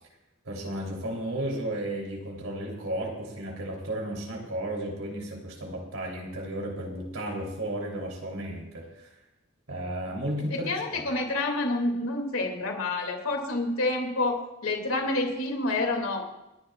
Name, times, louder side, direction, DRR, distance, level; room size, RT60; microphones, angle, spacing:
voice 1, 0.4-9.0 9.7-11.1, right 1 dB, 85° right, -1 dB, 3.2 m, -34 dB
voice 2, 10.7-16.3, left 2 dB, 80° left, 2 dB, 2.4 m, -28 dB
28.5 x 11.0 x 2.4 m, 0.94 s
head